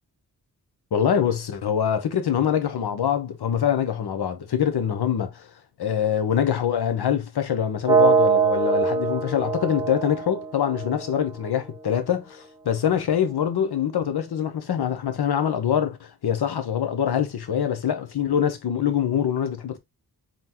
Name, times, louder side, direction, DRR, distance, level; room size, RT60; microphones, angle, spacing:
voice 1, 0.9-5.5 5.8-19.8, left 9 dB, 85° left, 0.9 m, -24 dB
sound 1, 7.9-11.8, right 5 dB, 10° right, 0.6 m, -23 dB
4.0 x 3.8 x 2.9 m
wide cardioid pair, 110°, 38 cm